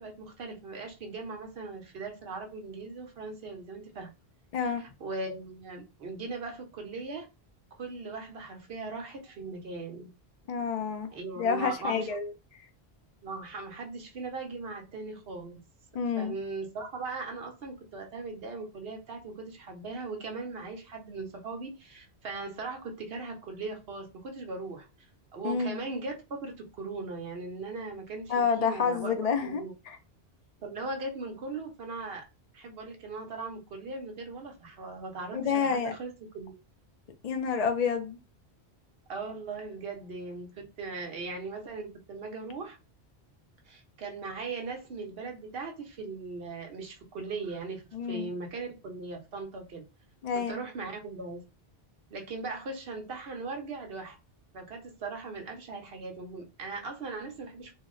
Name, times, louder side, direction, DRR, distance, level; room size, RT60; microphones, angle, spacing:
voice 1, 0.0-4.1 4.6-7.3 7.7-10.1 11.1-12.1 13.2-15.6 16.2-24.9 25.3-29.1 29.4-29.7 30.6-32.2 32.5-36.6 39.1-42.8 43.7-49.8 50.5-51.4 52.1-54.2 54.5-57.7, right 3 dB, 65° right, 1.0 m, -39 dB
voice 2, 4.5-4.8 10.5-11.1 11.4-12.3 15.9-16.4 25.4-25.8 28.3-30.0 35.3-35.9 37.2-38.2 47.9-48.3 50.2-50.6, left 6 dB, 55° left, 0.5 m, -29 dB
2.8 x 2.0 x 3.7 m
omnidirectional pair, 1.1 m